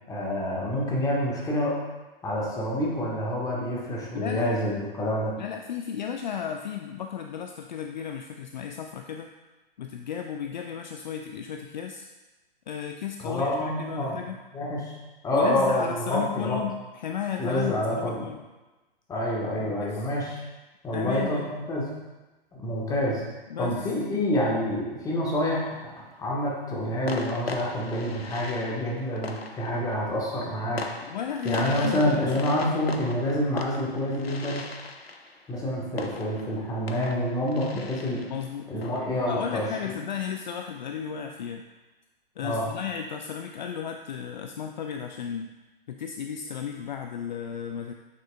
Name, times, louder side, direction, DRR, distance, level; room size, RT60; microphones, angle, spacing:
voice 1, 0.1-1.7 2.2-5.3 13.2-14.2 14.5-14.9 15.2-16.6 17.4-18.3 19.1-20.2 20.8-21.9 22.6-23.2 23.6-30.8 31.4-34.6 35.5-38.2 38.7-39.9 42.4-42.7, left 1 dB, 10° left, -4 dB, 1.4 m, -27 dB
voice 2, 4.1-4.6 5.4-9.3 9.8-12.1 12.7-14.4 15.3-18.4 19.8-20.1 20.9-21.5 23.5-23.9 31.1-33.0 38.3-38.7 39.3-41.6 42.4-45.5 45.9-47.9, left 8 dB, 50° left, 4 dB, 0.4 m, -34 dB
sound 1, 25.6-26.2 27.1-40.5, left 3 dB, 85° left, 0.7 m, -40 dB
8.3 x 6.3 x 2.3 m, 1.1 s
figure-of-eight pair, 115°, 30 cm